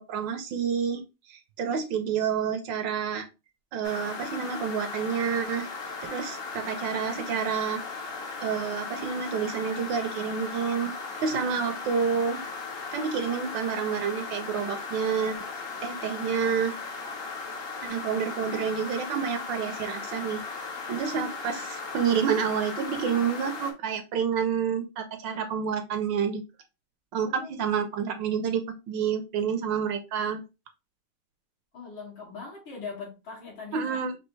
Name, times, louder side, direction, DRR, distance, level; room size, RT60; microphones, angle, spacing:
voice 1, 0.0-3.3 3.7-5.7 6.0-7.8 8.4-10.9 11.2-12.4 12.9-16.7 17.8-20.4 20.9-26.4 27.1-30.4 33.7-34.2, right 7 dB, 75° right, 1.2 m, -29 dB
sound 1, 3.8-23.7, left 4 dB, 45° left, 0.8 m, -37 dB
voice 2, 27.1-27.6 31.7-34.0, left 4 dB, 80° left, 2.7 m, -41 dB
5.4 x 2.7 x 3.1 m
omnidirectional pair, 2.2 m